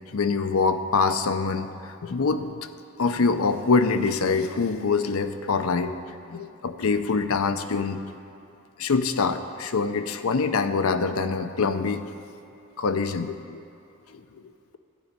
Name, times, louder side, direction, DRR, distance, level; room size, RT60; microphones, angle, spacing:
voice 1, 0.1-2.5 3.0-5.9 6.3-8.0 8.8-12.0 12.8-13.6 14.1-14.4, left 4 dB, 80° left, 10 dB, 0.6 m, -25 dB
12.0 x 5.3 x 8.8 m, 2.7 s
head